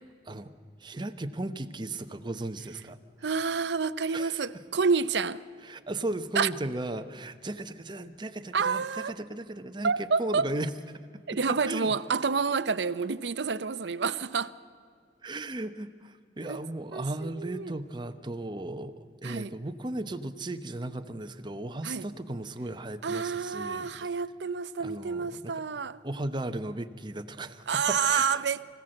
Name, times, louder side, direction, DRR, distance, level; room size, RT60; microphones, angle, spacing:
voice 1, 0.8-3.0 4.1-4.5 5.7-10.7 11.3-11.9 15.2-23.9 24.8-25.5 26.0-28.4, right 1 dB, 25° right, 0.9 m, -36 dB
voice 2, 3.2-5.4 6.3-6.5 8.5-9.1 9.8-10.5 11.3-14.5 16.4-16.6 16.9-17.7 19.2-19.5 21.8-22.1 23.0-26.0 27.7-28.6, right 5 dB, 80° right, 0.7 m, -29 dB
24.5 x 16.0 x 7.7 m
head